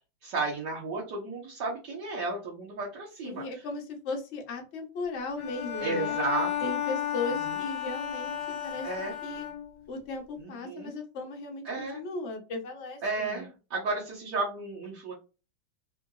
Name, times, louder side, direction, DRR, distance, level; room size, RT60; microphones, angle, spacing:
voice 1, 0.2-3.4 5.8-6.7 8.8-9.1 10.4-10.9 11.6-12.0 13.0-15.1, right 3 dB, 65° right, -5 dB, 1.5 m, -33 dB
voice 2, 3.2-6.2 6.6-8.9 9.2-9.5 9.9-13.5, left 3 dB, 50° left, 2 dB, 0.9 m, -37 dB
Bowed string instrument, 5.4-10.0, left 10 dB, 70° left, 1.4 m, -33 dB
3.7 x 2.5 x 2.3 m, 0.31 s
omnidirectional pair, 2.1 m